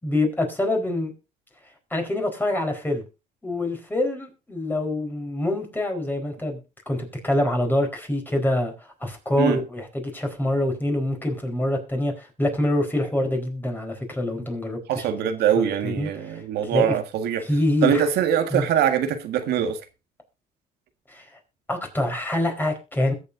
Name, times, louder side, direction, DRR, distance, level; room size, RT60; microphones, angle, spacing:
voice 1, 0.0-1.1 1.9-3.0 3.4-6.6 6.9-15.1 15.6-16.4 16.7-17.0 17.4-18.1 18.5-18.7 21.1-21.2 21.7-23.1, left 1 dB, 10° left, 4.2 m, -25 dB
voice 2, 14.9-17.5 17.8-19.8, right 9 dB, 75° right, 1.7 m, -23 dB
21.5 x 7.5 x 2.6 m
cardioid pair, 110°, 17 cm